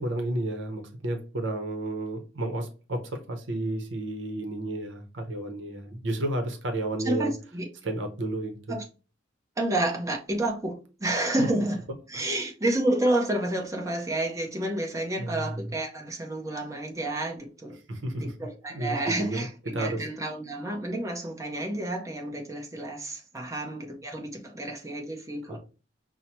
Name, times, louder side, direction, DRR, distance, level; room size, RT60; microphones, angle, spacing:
voice 1, 0.0-7.3 7.8-8.8 11.4-11.5 12.1-12.3 15.2-15.7 17.9-18.3 18.7-20.0 25.5-25.6, right 1 dB, 70° right, 0.8 m, -32 dB
voice 2, 7.0-7.7 8.7-8.8 9.6-11.8 12.1-17.8 18.2-25.6, right 1 dB, 15° right, 0.8 m, -30 dB
5.5 x 2.2 x 2.9 m
head